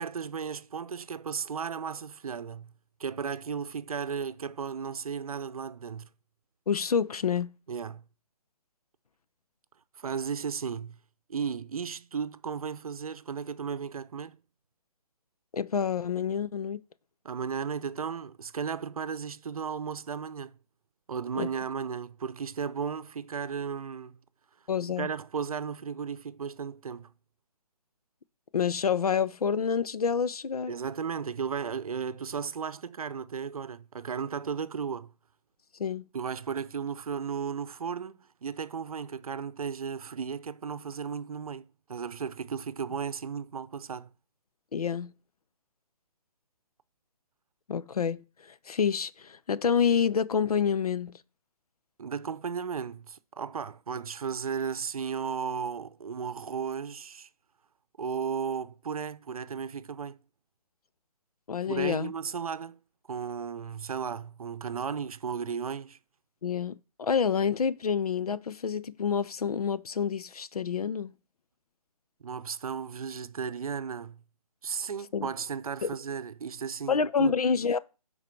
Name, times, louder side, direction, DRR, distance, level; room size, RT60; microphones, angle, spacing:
voice 1, 0.0-2.7 3.0-6.1 7.7-8.1 10.0-11.0 11.3-14.4 17.2-20.5 21.1-24.2 25.0-27.1 30.7-35.1 36.1-44.1 52.0-57.3 58.0-60.2 61.7-62.8 63.1-66.0 72.2-74.2 74.6-77.3, right 6 dB, 70° right, 0.7 m, -35 dB
voice 2, 6.7-7.5 15.5-16.8 21.3-21.5 24.7-25.1 28.5-30.7 35.8-36.1 44.7-45.1 47.7-51.2 61.5-62.1 66.4-71.1 75.1-75.3 75.8-76.0 76.9-77.8, left 6 dB, 75° left, 0.6 m, -28 dB
9.9 x 4.2 x 4.4 m
figure-of-eight pair, 145°, 19 cm